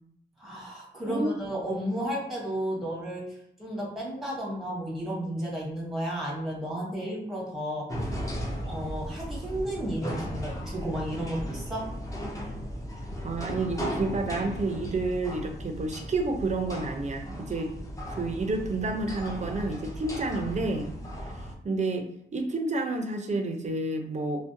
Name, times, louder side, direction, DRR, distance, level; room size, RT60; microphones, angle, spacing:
voice 1, 0.4-3.2 3.6-7.9 8.6-11.8, equal, ahead, -4 dB, 0.9 m, -33 dB
voice 2, 1.1-1.4 13.2-17.7 18.1-20.9 21.6-22.0 22.3-24.4, right 2 dB, 35° right, 4 dB, 0.4 m, -30 dB
sound 1, 7.9-21.6, equal, 15° left, 0.5 m, -36 dB
2.5 x 2.1 x 2.5 m, 0.73 s
wide cardioid pair, 110°, 20 cm